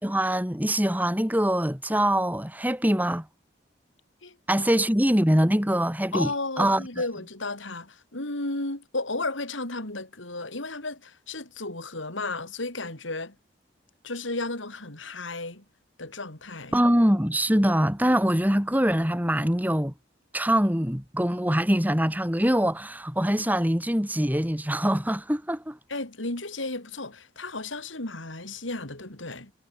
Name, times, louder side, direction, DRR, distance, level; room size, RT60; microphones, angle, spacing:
voice 1, 0.0-3.3 4.5-6.3 6.6-6.8 16.7-19.9 20.3-25.8, equal, 10° right, 3.4 m, -23 dB
voice 2, 4.2-4.8 6.1-13.3 14.0-15.6 16.0-16.8 25.9-29.5, left 2 dB, 85° left, 5.1 m, -34 dB
head